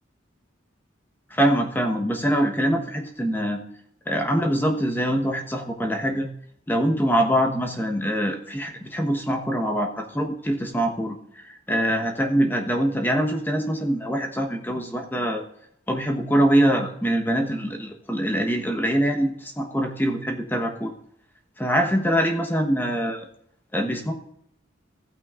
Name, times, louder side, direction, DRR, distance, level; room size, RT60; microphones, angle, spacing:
voice 1, 1.3-3.6 4.1-6.3 6.7-15.4 15.9-20.9 21.6-23.2 23.7-24.1, equal, 10° left, 2 dB, 1.1 m, -24 dB
15.5 x 9.0 x 2.5 m, 0.70 s
head